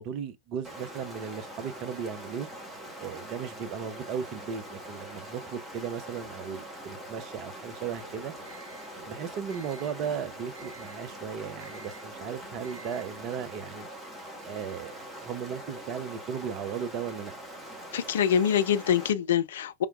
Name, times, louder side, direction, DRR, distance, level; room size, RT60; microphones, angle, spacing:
voice 1, 0.0-2.5 3.0-8.3 9.0-13.9 14.5-17.3, right 7 dB, 40° right, 0.7 m, -36 dB
Stream, 0.6-19.1, right 1 dB, 10° right, 1.7 m, -43 dB
sound 1, 7.9-13.5, right 3 dB, 65° right, 1.8 m, -52 dB
voice 2, 17.9-19.9, left 8 dB, 60° left, 0.4 m, -25 dB
4.5 x 3.6 x 2.4 m
figure-of-eight pair, 90°, 0 cm